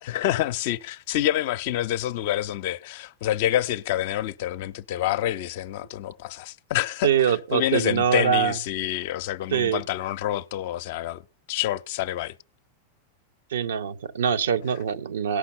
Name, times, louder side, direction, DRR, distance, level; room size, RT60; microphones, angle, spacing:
voice 1, 0.0-11.2 11.5-12.3, left 13 dB, 50° left, 0.5 m, -27 dB
voice 2, 7.0-8.5 9.5-9.8 13.5-15.4, right 8 dB, 65° right, 0.7 m, -23 dB
17.0 x 5.8 x 5.7 m
figure-of-eight pair, 90°, 0 cm